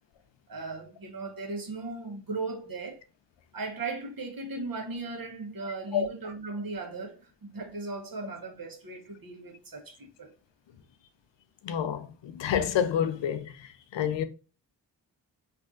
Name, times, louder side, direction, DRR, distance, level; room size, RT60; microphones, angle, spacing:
voice 1, 0.5-3.0 3.5-10.3, right 3 dB, 50° right, 1.1 m, -37 dB
voice 2, 11.6-14.2, left 9 dB, 80° left, 0.5 m, -29 dB
3.3 x 2.6 x 2.4 m
cardioid pair, 40°, 43 cm